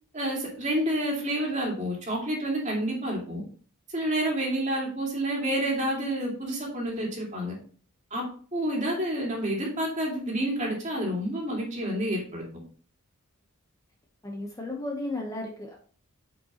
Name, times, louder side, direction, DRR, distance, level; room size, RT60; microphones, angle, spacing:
voice 1, 0.1-3.4 3.9-7.6 8.1-8.2 8.5-12.4, right 1 dB, 30° right, -1 dB, 2.4 m, -29 dB
voice 2, 14.2-15.8, left 2 dB, 15° left, 0 dB, 1.0 m, -34 dB
8.8 x 5.3 x 3.0 m, 0.43 s
head